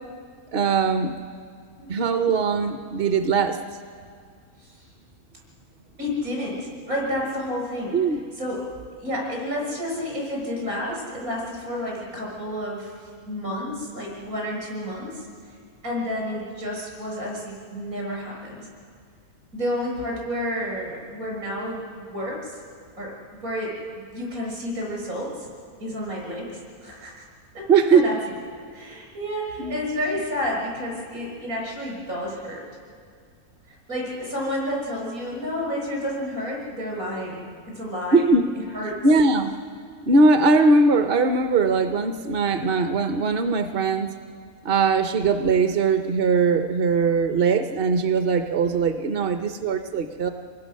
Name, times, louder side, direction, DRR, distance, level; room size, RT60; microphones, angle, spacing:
voice 1, 0.5-1.2 1.9-3.6 7.9-8.2 27.7-28.0 29.6-29.8 38.1-38.5 39.0-39.5 40.0-44.1 44.6-50.3, right 4 dB, 50° right, 7 dB, 0.8 m, -20 dB
voice 2, 6.0-7.9 8.4-8.6 9.0-15.3 15.8-18.7 19.5-22.6 23.0-23.7 24.1-25.3 25.8-27.3 27.5-27.7 27.9-28.2 28.7-32.6 33.9-38.2 38.5-38.9, left 1 dB, 75° right, -2 dB, 7.1 m, -30 dB
27.0 x 20.5 x 6.4 m, 2.1 s
omnidirectional pair, 1.5 m